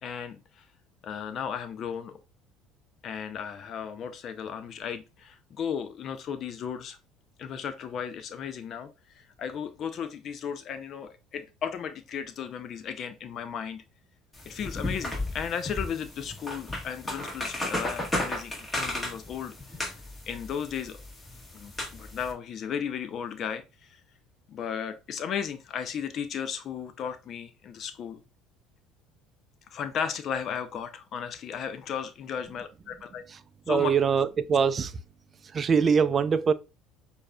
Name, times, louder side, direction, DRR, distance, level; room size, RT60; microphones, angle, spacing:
voice 1, 0.0-0.7 1.0-2.2 3.0-7.0 7.4-13.8 14.5-19.6 20.3-21.0 21.5-24.0 24.5-28.2 29.7-33.2 33.7-33.9, left 7 dB, 50° left, 0.5 m, -35 dB
sound 1, 14.3-22.3, left 1 dB, 20° left, 1.6 m, -34 dB
voice 2, 33.7-34.9 35.5-36.5, right 6 dB, 40° right, 0.4 m, -23 dB
6.4 x 2.7 x 2.2 m
hypercardioid pair, 70°, 0 cm